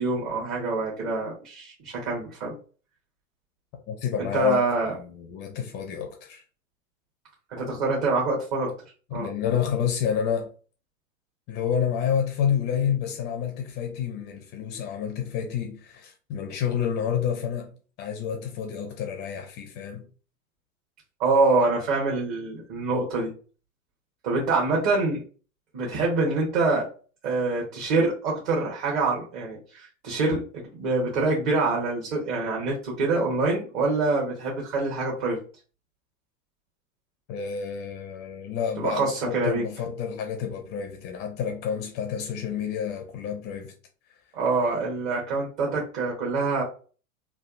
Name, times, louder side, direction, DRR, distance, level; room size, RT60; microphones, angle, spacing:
voice 1, 0.0-2.6 4.2-4.9 7.5-8.7 9.1-9.3 21.2-23.3 24.2-25.2 25.7-26.9 27.2-30.4 30.7-35.4 38.8-39.6 44.3-46.6, right 3 dB, 40° right, 1.1 m, -25 dB
voice 2, 3.9-4.6 4.9-6.4 9.1-10.5 11.5-20.0 37.3-43.7, left 8 dB, 25° left, 0.4 m, -29 dB
3.3 x 2.3 x 2.4 m
figure-of-eight pair, 90°, 41 cm